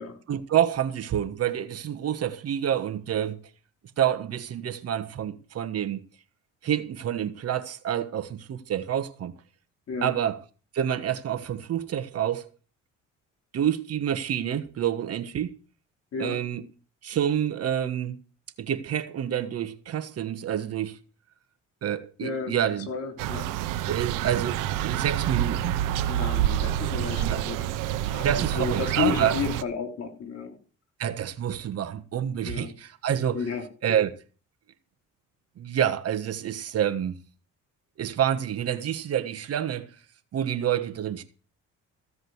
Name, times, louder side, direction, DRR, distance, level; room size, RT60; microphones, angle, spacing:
voice 1, 0.3-3.4 4.0-6.0 6.6-9.3 10.0-10.4 10.7-12.5 13.5-15.5 16.2-16.6 17.0-18.2 18.6-21.0 21.8-22.9 23.9-25.8 27.2-27.4 28.2-29.4 31.0-33.4 33.8-34.1 35.6-37.2 38.0-39.9 40.3-41.2, right 10 dB, 50° right, 1.3 m, -28 dB
voice 2, 22.2-23.6 26.1-27.6 28.1-28.3 28.5-30.6 32.5-32.7 33.3-33.7, left 6 dB, 50° left, 3.6 m, -32 dB
sound 1, 23.2-29.6, right 12 dB, 90° right, 0.9 m, -28 dB
15.0 x 5.2 x 7.9 m
cardioid pair, 110°, 31 cm